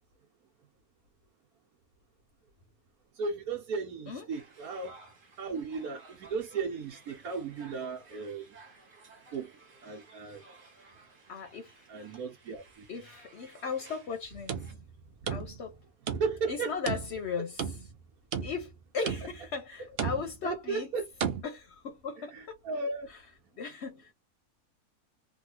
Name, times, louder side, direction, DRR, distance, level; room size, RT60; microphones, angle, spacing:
voice 1, 3.1-5.0 5.4-8.4 9.3-9.5 9.8-10.4 11.9-12.9 16.2-16.7 20.4-21.1 22.3-23.1, right 4 dB, 75° right, 1.3 m, -35 dB
sound 1, 4.3-14.7, right 3 dB, 40° right, 1.3 m, -56 dB
voice 2, 11.3-12.2 12.9-14.8 15.2-15.8 16.5-17.9 18.4-20.9 21.4-22.5 23.1-23.3 23.6-24.1, left 5 dB, 55° left, 0.9 m, -37 dB
sound 2, 14.2-15.8 16.1-16.5 16.9-18.0 18.3-18.8 19.1-19.5 20.0-20.5 21.2-21.4, right 7 dB, 60° right, 0.6 m, -35 dB
3.3 x 2.4 x 2.8 m
omnidirectional pair, 1.6 m